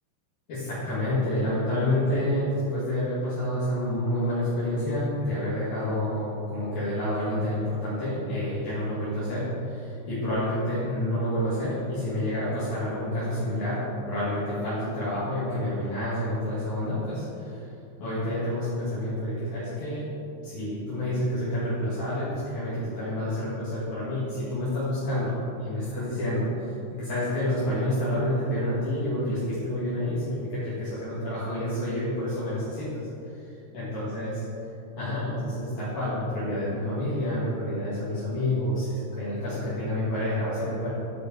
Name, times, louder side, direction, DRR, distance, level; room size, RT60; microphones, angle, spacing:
voice 1, 0.5-17.6 18.0-20.1 20.4-25.4 25.6-26.5 26.9-33.0 33.7-34.3 35.0-40.9, left 1 dB, 60° left, -12 dB, 2.0 m, -28 dB
9.7 x 4.8 x 4.4 m, 2.9 s
omnidirectional pair, 5.8 m